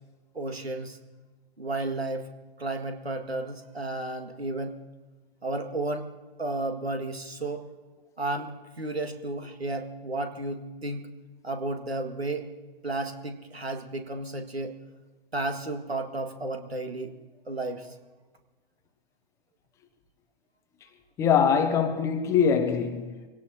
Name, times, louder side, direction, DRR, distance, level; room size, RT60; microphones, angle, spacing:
voice 1, 0.3-1.0 1.6-2.3 2.6-4.8 5.4-6.1 6.4-7.6 8.2-11.1 11.4-12.5 12.8-14.8 15.3-17.1 17.5-17.9, right 2 dB, 90° right, 1.9 m, -33 dB
voice 2, 21.2-23.3, left 7 dB, 10° left, 0.5 m, -23 dB
24.5 x 17.5 x 2.8 m
figure-of-eight pair, 130°, 30 cm